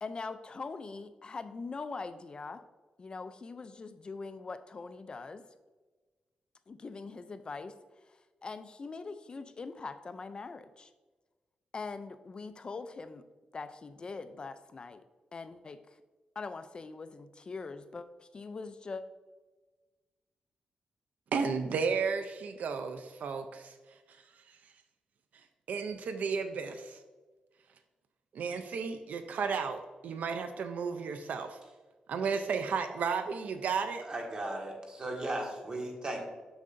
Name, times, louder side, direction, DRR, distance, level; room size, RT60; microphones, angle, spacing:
voice 1, 0.0-2.6 3.0-5.4 6.7-10.9 11.7-13.2 13.5-15.0 15.3-16.0 16.4-19.0, left 4 dB, 35° left, 11 dB, 0.3 m, -42 dB
voice 2, 21.3-23.8 24.1-24.2 25.7-27.0 28.3-31.6 32.1-34.0, right 5 dB, 75° right, 8 dB, 0.4 m, -33 dB
voice 3, 34.0-36.2, right 1 dB, 35° right, 0 dB, 1.6 m, -36 dB
7.1 x 6.5 x 2.5 m, 1.3 s
cardioid pair, 105°, 3 cm